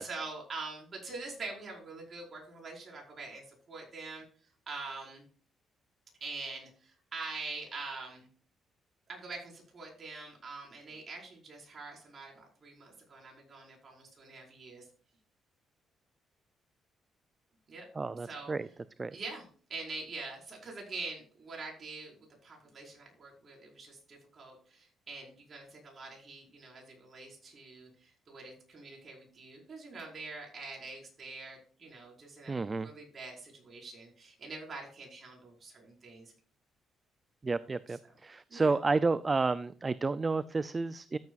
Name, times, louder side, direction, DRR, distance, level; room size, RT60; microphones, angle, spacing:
voice 1, 0.0-4.3 4.7-5.2 6.2-8.3 9.1-14.8 17.7-17.9 18.2-18.5 19.1-36.3 37.9-38.0 38.5-38.7, right 3 dB, 45° right, -1 dB, 5.2 m, -44 dB
voice 2, 18.0-18.7 19.0-19.1 32.5-32.9 37.4-41.2, right 3 dB, 30° right, 16 dB, 0.4 m, -31 dB
14.0 x 8.2 x 2.5 m, 0.43 s
cardioid pair, 90°, 0 cm